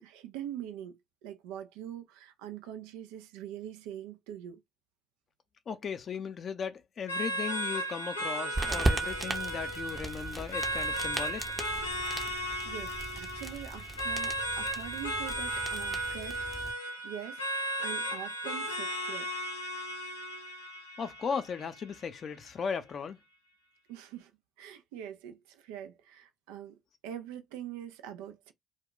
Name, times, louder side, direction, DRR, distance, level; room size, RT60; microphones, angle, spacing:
voice 1, 0.0-4.6 12.0-16.7 17.0-19.3 23.9-24.3 24.6-28.5, right 10 dB, 75° right, 0.4 m, -44 dB
voice 2, 5.7-11.5 21.0-23.2, left 6 dB, 45° left, 0.5 m, -37 dB
sound 1, 7.1-22.0, right 1 dB, 90° left, 0.6 m, -35 dB
sound 2, 8.5-16.7, right 2 dB, 25° right, 0.7 m, -37 dB
2.2 x 2.2 x 3.7 m
hypercardioid pair, 55°, 0 cm